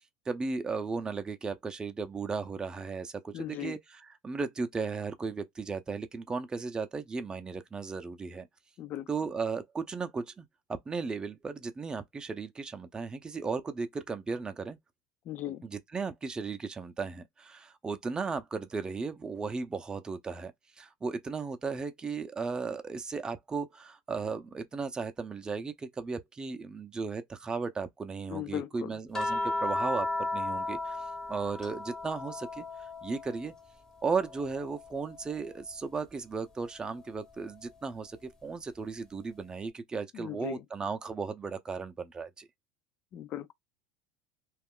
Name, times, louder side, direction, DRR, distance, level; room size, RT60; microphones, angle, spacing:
voice 1, 0.3-8.5 9.1-14.8 15.6-20.5 20.8-31.0 31.3-33.5 34.0-42.5, right 4 dB, 20° right, 0.5 m, -36 dB
voice 2, 3.3-3.8 8.8-9.1 15.3-15.6 28.3-28.9 40.1-40.6 43.1-43.5, left 13 dB, 45° left, 0.4 m, -37 dB
sound 1, 29.1-33.6 34.0-35.6 37.1-37.3, left 2 dB, 15° left, 0.7 m, -35 dB
2.4 x 2.0 x 3.6 m
supercardioid pair, 105°, 4 cm